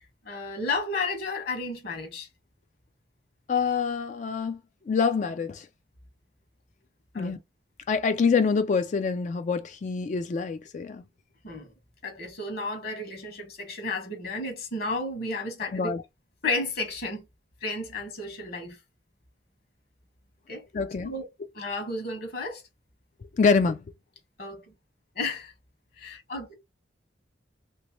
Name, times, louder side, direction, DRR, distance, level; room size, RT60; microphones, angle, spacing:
voice 1, 0.2-2.3 7.1-7.4 11.4-11.7 12.0-15.9 16.4-17.2 17.6-18.8 20.5-20.6 21.0-21.3 21.5-22.6 24.4-24.6 25.2-25.5 26.0-26.5, left 2 dB, 55° left, 1.4 m, -32 dB
voice 2, 3.5-4.6 4.9-5.7 7.2-7.4 7.9-11.0 15.7-16.0 20.7-21.1 23.4-23.8, left 5 dB, 40° left, 0.3 m, -25 dB
3.0 x 3.0 x 3.1 m
head